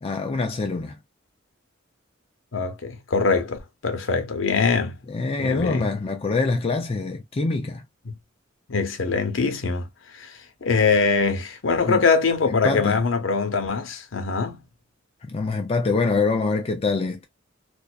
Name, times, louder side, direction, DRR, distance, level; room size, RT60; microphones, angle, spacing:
voice 1, 0.0-1.0 5.1-7.9 11.8-12.0 12.5-13.0 15.2-17.2, left 3 dB, 30° left, 0.4 m, -25 dB
voice 2, 2.5-5.0 5.4-5.9 8.1-8.2 8.7-9.9 10.1-14.6, left 4 dB, 75° left, 0.7 m, -23 dB
2.5 x 2.2 x 2.3 m
head